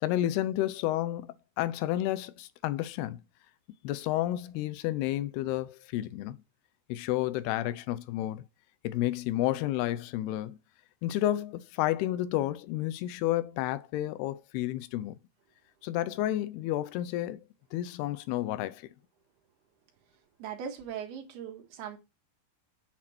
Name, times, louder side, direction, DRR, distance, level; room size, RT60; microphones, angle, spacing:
voice 1, 0.0-3.2 3.8-6.4 6.9-8.4 8.8-10.6 11.0-15.2 15.8-17.4 17.7-18.9, left 14 dB, 90° left, 2.7 m, -31 dB
voice 2, 20.4-22.0, right 8 dB, 80° right, 3.6 m, -39 dB
8.7 x 8.2 x 4.4 m
omnidirectional pair, 4.5 m